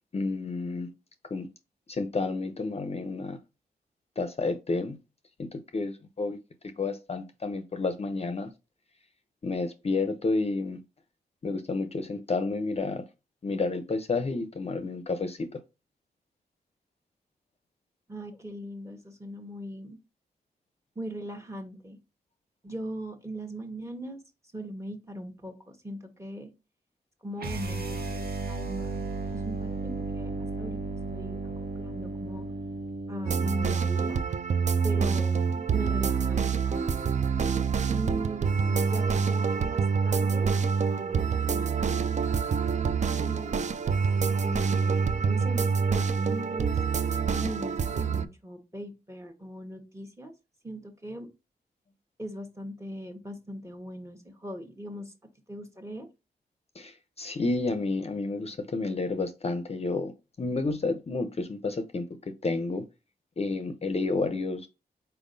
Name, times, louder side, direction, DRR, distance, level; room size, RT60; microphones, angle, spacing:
voice 1, 0.1-0.9 1.3-1.5 1.9-3.4 4.2-5.0 5.4-6.4 6.8-8.5 9.4-10.8 11.4-13.0 13.4-15.6 56.7-62.8 63.4-64.7, left 3 dB, 40° left, 0.5 m, -30 dB
voice 2, 18.1-20.0 20.9-22.0 22.6-24.2 24.5-26.5 27.2-29.0 29.3-31.4 31.7-32.4 33.1-34.2 34.8-37.2 37.9-40.5 40.9-42.0 42.7-43.6 44.4-46.8 47.3-50.3 50.6-51.3 52.2-55.1 55.5-56.1, right 1 dB, 15° right, 1.1 m, -39 dB
sound 1, 27.4-33.5, right 3 dB, 70° right, 0.9 m, -34 dB
sound 2, 33.2-48.3, right 6 dB, 45° right, 0.4 m, -26 dB
4.4 x 3.5 x 2.6 m
cardioid pair, 65°, 17 cm